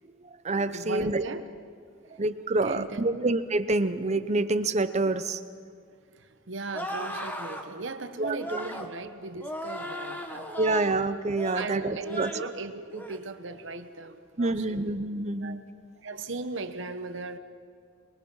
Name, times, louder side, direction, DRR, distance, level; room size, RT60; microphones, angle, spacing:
voice 1, 0.1-1.2 2.2-5.4 8.2-8.6 10.6-12.3 14.4-15.6, right 2 dB, 35° right, 0.7 m, -27 dB
voice 2, 0.7-1.5 2.1-2.2 2.6-3.3 6.1-10.7 11.5-15.0 15.4-15.6 16.0-17.4, right 3 dB, 65° right, 1.1 m, -37 dB
sound 1, 6.7-7.7 8.4-8.9 9.4-11.0 11.3-11.7 12.0-12.5 12.9-13.2, equal, 10° left, 1.4 m, -37 dB
25.0 x 21.5 x 5.6 m
head